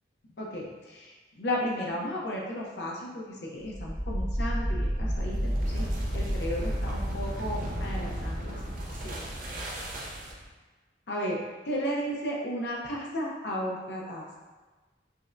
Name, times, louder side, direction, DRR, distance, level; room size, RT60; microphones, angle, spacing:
voice 1, 0.4-1.1 1.4-5.8 6.1-8.5 9.0-9.2 11.1-11.4 11.6-14.3, equal, 70° left, -3 dB, 0.6 m, -34 dB
sound 1, 3.6-10.5, equal, 50° right, 0.6 m, -31 dB
5.1 x 2.1 x 2.5 m, 1.3 s
head